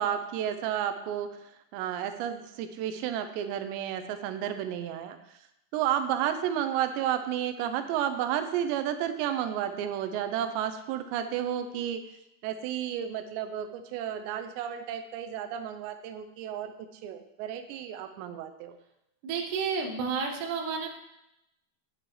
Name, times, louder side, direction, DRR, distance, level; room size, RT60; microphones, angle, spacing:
voice 1, 0.0-5.4 5.7-12.0 12.4-16.7 17.0-18.8, right 10 dB, 85° right, 8 dB, 2.9 m, -32 dB
voice 2, 19.2-20.9, right 5 dB, 65° right, 1 dB, 2.1 m, -31 dB
8.9 x 8.8 x 3.2 m, 0.86 s
omnidirectional pair, 5.0 m